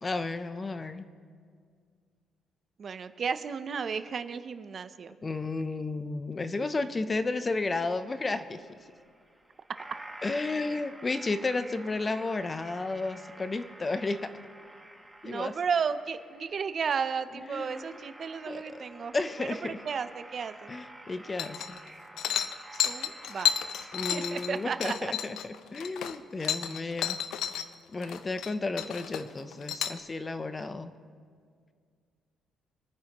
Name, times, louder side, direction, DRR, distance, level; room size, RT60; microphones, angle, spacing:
voice 1, 0.0-1.1 5.2-8.8 10.2-14.3 15.2-15.5 17.4-18.0 18.5-18.8 19.1-19.8 20.7-21.8 23.9-25.4 25.7-27.2 27.9-30.9, left 3 dB, 25° left, 11 dB, 0.6 m, -32 dB
voice 2, 2.8-5.1 15.2-19.1 19.4-20.7 22.7-23.5 23.8-25.1, right 6 dB, 40° right, 11 dB, 0.5 m, -33 dB
sound 1, 7.6-24.8, right 1 dB, ahead, 1.6 m, -50 dB
sound 2, 21.4-21.9 22.2-27.7 28.0-28.5 28.8-30.0, left 9 dB, 75° left, 0.5 m, -32 dB
26.0 x 9.6 x 2.9 m, 2.1 s
cardioid pair, 130°, 0 cm